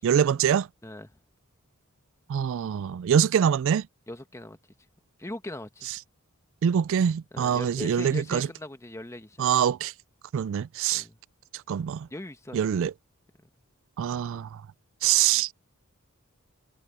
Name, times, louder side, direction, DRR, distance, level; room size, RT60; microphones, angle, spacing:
voice 1, 0.0-0.7 2.3-3.9 6.6-8.5 9.4-9.9 10.3-11.0 11.7-12.1 12.5-12.9 14.0-14.6 15.0-15.5, right 8 dB, 60° right, 0.3 m, -24 dB
voice 2, 0.8-1.2 4.1-4.6 5.2-5.9 7.3-9.5 10.9-11.2 12.1-12.7 15.3-15.4, left 1 dB, 15° left, 1.3 m, -40 dB
head